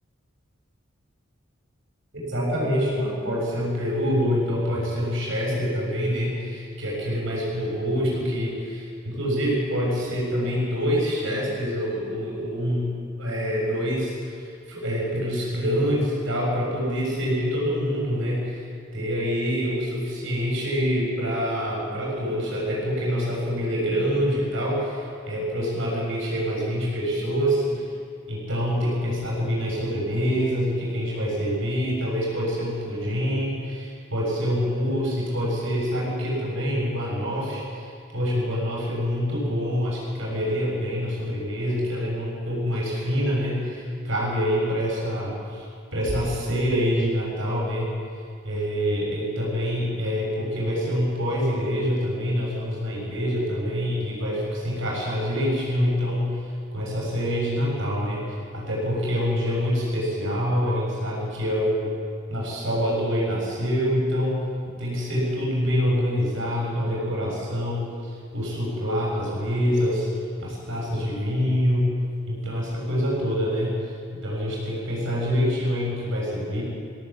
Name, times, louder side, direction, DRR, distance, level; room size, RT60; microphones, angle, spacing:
voice 1, 2.1-12.9 13.2-18.6 18.9-27.8 28.3-47.9 48.4-56.4 56.7-61.9 62.3-64.5 64.8-70.1 70.4-71.9 72.3-76.6, equal, 60° right, -4 dB, 6.6 m, -26 dB
21.5 x 16.5 x 8.4 m, 2.2 s
head